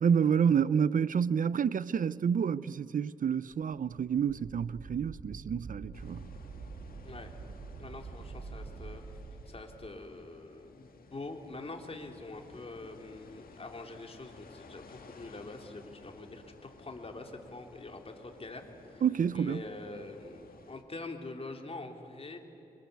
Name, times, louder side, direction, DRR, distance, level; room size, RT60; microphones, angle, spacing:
voice 1, 0.0-6.2 19.0-19.6, right 7 dB, 65° right, 0.5 m, -28 dB
Wind, 3.5-9.9, right 4 dB, 90° right, 1.5 m, -46 dB
sound 1, 5.9-20.8, left 4 dB, 85° left, 2.1 m, -55 dB
voice 2, 7.0-7.4 7.8-9.0 9.5-19.0 19.3-22.4, left 2 dB, 40° left, 3.3 m, -45 dB
26.5 x 25.5 x 8.2 m
cardioid pair, 75°, 15 cm